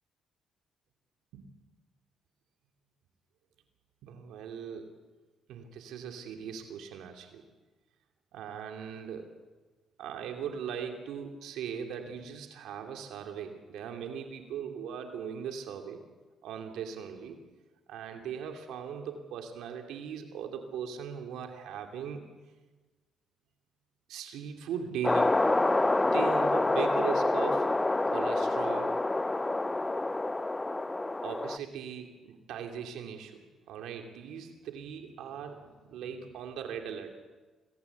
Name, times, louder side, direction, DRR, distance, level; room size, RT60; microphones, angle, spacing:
voice 1, 4.0-5.0 5.5-7.4 8.3-9.3 10.0-16.0 16.4-17.4 17.9-22.3 24.1-25.4 26.0-27.8 28.1-29.0 31.2-37.2, right 7 dB, 85° right, 4 dB, 2.7 m, -39 dB
sound 1, 25.0-31.6, left 2 dB, 15° left, 0.7 m, -27 dB
26.5 x 19.0 x 8.3 m, 1.3 s
cardioid pair, 90°, 0 cm